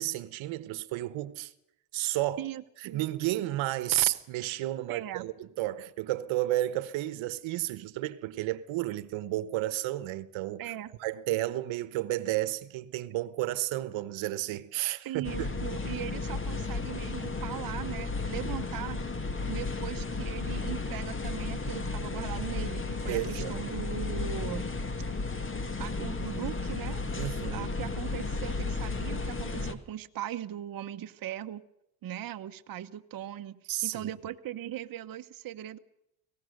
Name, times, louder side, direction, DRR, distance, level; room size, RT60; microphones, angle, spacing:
voice 1, 0.0-1.5 1.9-2.4 2.8-10.6 11.0-15.5 23.1-23.5 27.2-27.7 33.7-34.1, right 16 dB, 75° right, 1.1 m, -32 dB
voice 2, 2.4-3.1 4.9-5.3 10.6-10.9 15.0-19.0 19.5-24.7 25.8-27.0 27.5-31.6 32.0-35.8, right 11 dB, 45° right, 1.0 m, -39 dB
sound 1, 15.2-29.8, left 3 dB, 25° left, 1.9 m, -34 dB
25.0 x 18.0 x 6.6 m
cardioid pair, 90°, 47 cm